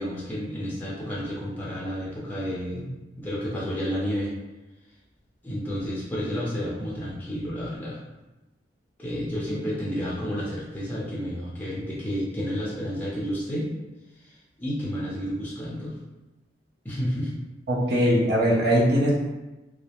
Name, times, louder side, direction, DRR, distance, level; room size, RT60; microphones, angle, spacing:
voice 1, 0.0-4.3 5.4-8.0 9.0-13.7 14.2-16.0 16.8-17.3, equal, 10° left, -7 dB, 0.5 m, -31 dB
voice 2, 17.7-19.1, equal, 60° right, -5 dB, 0.5 m, -21 dB
2.3 x 2.0 x 2.8 m, 1.1 s
head